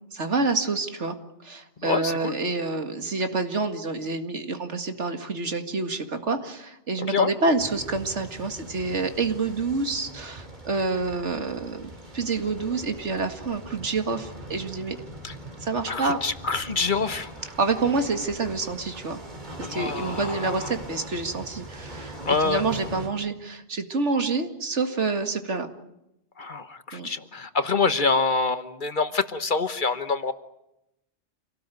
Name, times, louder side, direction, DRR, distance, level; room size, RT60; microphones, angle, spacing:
voice 1, 0.1-1.1 1.4-15.0 15.6-16.2 17.6-19.2 19.6-22.2 22.4-25.7 26.9-27.1, right 3 dB, 80° right, 7 dB, 2.3 m, -27 dB
voice 2, 1.8-2.4 7.0-7.3 15.2-15.3 15.9-17.3 19.6-20.7 22.3-22.6 26.4-30.3, left 4 dB, 45° left, 11 dB, 1.3 m, -26 dB
sound 1, 7.6-23.1, right 1 dB, 40° right, 3.2 m, -41 dB
27.5 x 18.0 x 9.2 m, 0.87 s
omnidirectional pair, 1.2 m